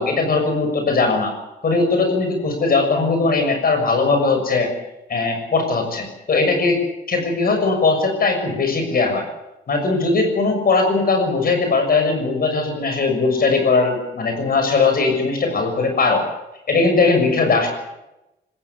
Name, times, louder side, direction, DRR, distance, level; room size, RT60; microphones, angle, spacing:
voice 1, 0.0-1.4 1.6-4.7 5.1-6.8 7.1-9.2 9.7-16.2 16.7-17.7, left 3 dB, 50° left, 4 dB, 6.6 m, -19 dB
20.0 x 16.0 x 9.7 m, 0.94 s
cardioid pair, 90°, 20 cm